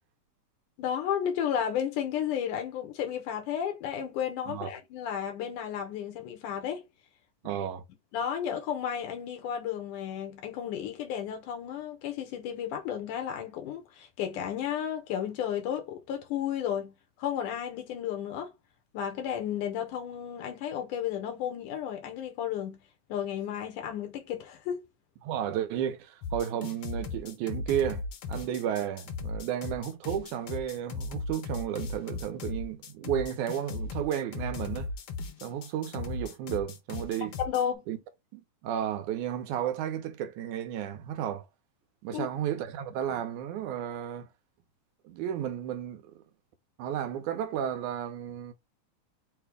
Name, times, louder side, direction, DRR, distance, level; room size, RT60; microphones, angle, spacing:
voice 1, 0.8-6.8 8.1-18.5 18.9-22.8 23.1-24.8 37.4-37.8 42.1-42.3, left 9 dB, 90° left, 2.7 m, -33 dB
voice 2, 7.4-7.8 25.2-28.0 28.3-34.9 35.4-37.4 37.9-38.0 38.3-41.5 42.0-44.3 45.0-46.2 46.8-48.5, right 10 dB, 85° right, 2.2 m, -33 dB
sound 1, 26.2-37.6, left 4 dB, 70° left, 1.3 m, -37 dB
6.5 x 2.3 x 3.3 m
omnidirectional pair, 3.5 m